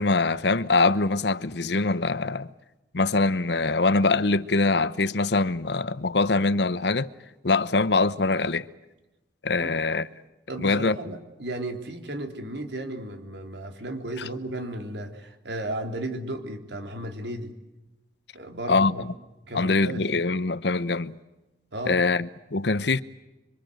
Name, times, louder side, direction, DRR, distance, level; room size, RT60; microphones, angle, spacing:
voice 1, 0.0-2.5 2.9-7.1 7.4-8.7 9.4-10.1 10.6-11.0 18.7-18.9 19.5-21.2 21.9-23.0, left 3 dB, 65° left, 0.9 m, -23 dB
voice 2, 10.5-17.5 18.3-19.0 19.4-20.1 21.7-22.0, right 1 dB, 70° right, 3.5 m, -34 dB
27.0 x 25.5 x 7.9 m
head